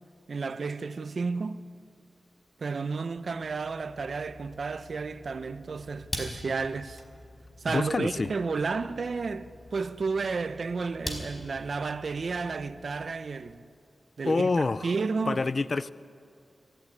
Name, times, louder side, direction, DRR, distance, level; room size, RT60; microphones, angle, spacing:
voice 1, 0.3-1.6 2.6-7.0 7.6-13.7 14.2-14.5 14.8-15.4, right 4 dB, 60° right, 0.8 m, -32 dB
sound 1, 3.1-13.6, left 1 dB, 25° left, 4.6 m, -44 dB
voice 2, 7.7-8.3 14.3-14.9 15.3-15.9, left 3 dB, 45° left, 0.5 m, -27 dB
23.0 x 15.0 x 9.8 m
wide cardioid pair, 80°, 0 cm